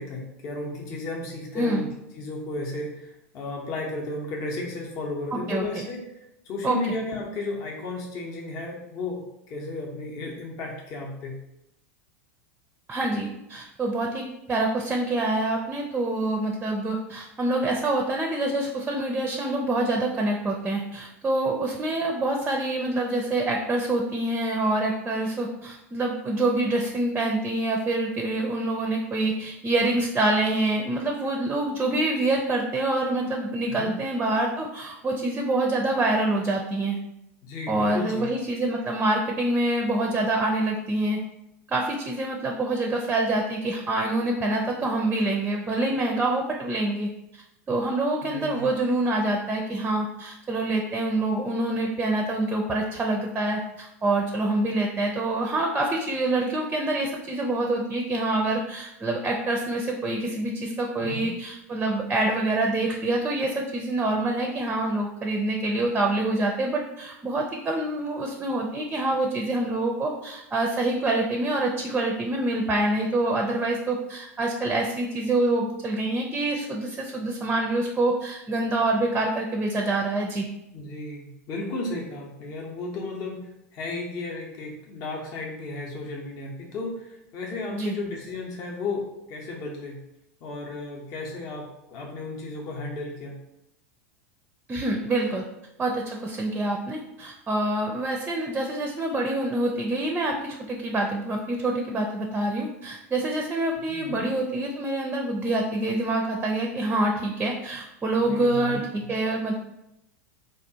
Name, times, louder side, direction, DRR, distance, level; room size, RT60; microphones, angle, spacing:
voice 1, 0.0-11.4 33.6-34.0 37.4-38.3 48.2-48.7 61.0-61.3 80.7-90.0 90.4-93.4 103.9-104.3 108.2-109.1, left 2 dB, 45° left, -1 dB, 0.7 m, -34 dB
voice 2, 5.3-5.9 6.6-6.8 12.9-14.2 14.5-37.0 37.7-41.2 41.7-80.5 87.7-88.0 94.7-95.4 95.8-109.5, right 2 dB, 15° right, 1 dB, 0.4 m, -26 dB
3.4 x 2.3 x 2.7 m, 0.84 s
hypercardioid pair, 95°, 8 cm